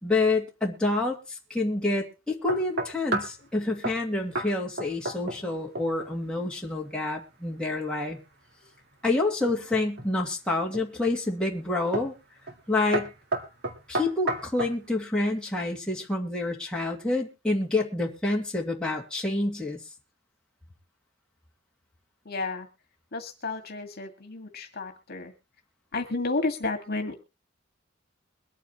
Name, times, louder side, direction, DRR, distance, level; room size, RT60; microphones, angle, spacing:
voice 1, 0.0-8.2 9.0-12.1 12.7-13.1 13.9-19.8, left 2 dB, 5° left, -2 dB, 2.4 m, -28 dB
sound 1, 2.5-3.4 3.8-4.0 4.4-4.5 4.8-5.5 5.8-6.1 9.5-10.1 10.7-11.1 11.9-12.2 12.5-12.7 12.9-14.8, right 2 dB, 55° right, 1.9 m, -31 dB
voice 2, 22.3-22.7 23.1-25.3 25.9-27.2, left 3 dB, 50° left, 5 dB, 2.0 m, -32 dB
23.0 x 9.1 x 3.0 m, 0.29 s
head